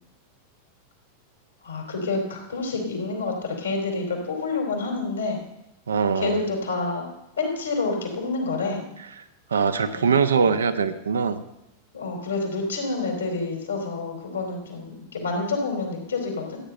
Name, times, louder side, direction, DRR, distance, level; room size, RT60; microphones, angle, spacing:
voice 1, 1.6-5.4 6.1-7.1 7.4-8.8 9.9-10.1 10.4-10.6 11.9-16.6, left 3 dB, 75° left, 1 dB, 3.4 m, -28 dB
voice 2, 5.9-6.4 9.5-11.4, right 5 dB, 70° right, 10 dB, 0.9 m, -22 dB
14.0 x 8.9 x 5.5 m, 0.88 s
figure-of-eight pair, 90°, 0 cm